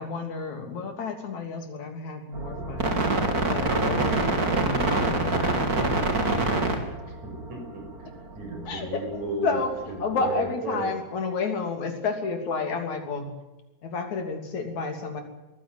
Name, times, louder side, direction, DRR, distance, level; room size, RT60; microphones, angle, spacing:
voice 1, 0.0-3.0 3.4-6.1 8.7-9.0 9.4-13.3 13.8-15.2, left 4 dB, 75° left, 5 dB, 4.4 m, -31 dB
sound 1, 2.3-8.9 9.2-9.3, right 2 dB, 30° right, 3.4 m, -26 dB
voice 2, 7.0-7.9 8.3-9.6 10.0-10.9, right 2 dB, 70° right, 2 dB, 7.7 m, -34 dB
22.0 x 15.5 x 9.3 m, 1.0 s
omnidirectional pair, 3.3 m